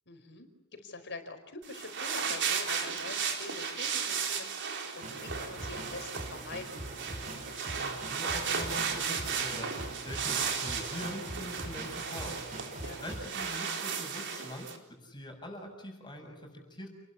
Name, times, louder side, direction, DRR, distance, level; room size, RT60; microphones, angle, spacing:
voice 1, 0.1-6.8 12.8-13.4, left 3 dB, 55° left, 7 dB, 4.8 m, -45 dB
sound 1, 1.6-14.8, right 6 dB, 55° right, 3.9 m, -35 dB
sound 2, 5.0-13.3, right 1 dB, 40° right, 6.9 m, -43 dB
voice 2, 7.7-9.7 10.0-12.5 13.0-16.9, equal, 20° left, 2 dB, 6.9 m, -43 dB
30.0 x 21.5 x 8.7 m, 0.81 s
head